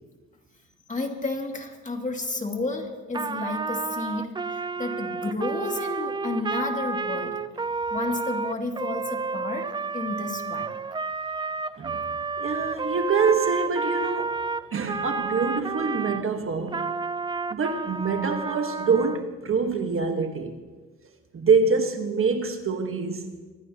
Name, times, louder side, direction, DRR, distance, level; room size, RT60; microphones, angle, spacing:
voice 1, 0.9-7.4 7.9-10.8, left 2 dB, 25° left, 2.4 m, -31 dB
Trumpet, 3.1-16.2 16.7-19.2, right 4 dB, 15° right, 0.4 m, -31 dB
voice 2, 12.4-14.4 14.7-16.9 17.5-20.6 21.3-23.3, right 5 dB, 45° right, 1.4 m, -25 dB
24.5 x 16.0 x 2.9 m
cardioid pair, 90°, 30 cm